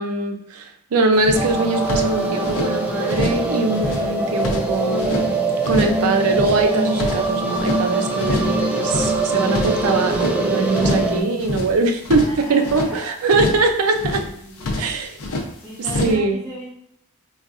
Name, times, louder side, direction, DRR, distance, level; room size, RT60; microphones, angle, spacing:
voice 1, 0.0-5.3 5.7-14.2 14.8-15.2 16.0-16.4, right 3 dB, 70° right, 5 dB, 0.5 m, -21 dB
sound 1, 1.2-2.7 3.1-3.5 3.7-5.3 5.6-6.0 6.3-7.8 8.2-8.6 8.8-10.4 10.7-11.1 11.4-12.9 13.3-13.7 13.9-15.5 15.8-16.1, left 2 dB, 65° left, 0.6 m, -27 dB
sound 2, 1.3-11.2, right 2 dB, 5° right, 0.4 m, -23 dB
voice 2, 12.1-13.1 14.1-14.9 15.6-16.7, equal, 10° left, -11 dB, 0.9 m, -37 dB
4.0 x 2.3 x 2.4 m, 0.69 s
head